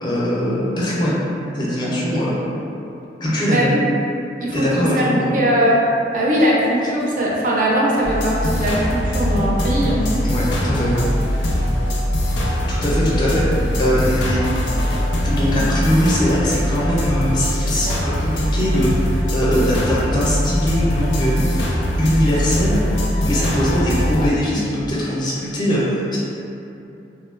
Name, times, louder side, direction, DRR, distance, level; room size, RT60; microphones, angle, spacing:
voice 1, 0.0-1.2 1.5-2.3 3.2-3.7 4.5-5.3 10.2-10.9 12.7-13.4 13.8-14.4 15.2-21.4 22.0-22.8 23.2-26.2, equal, 25° left, -7 dB, 0.5 m, -21 dB
voice 2, 3.5-3.8 4.4-5.8 6.1-10.1, equal, 45° right, -4 dB, 0.4 m, -20 dB
sound 1, 8.0-24.3, equal, 85° left, 0.4 m, -21 dB
2.9 x 2.2 x 2.4 m, 2.8 s
head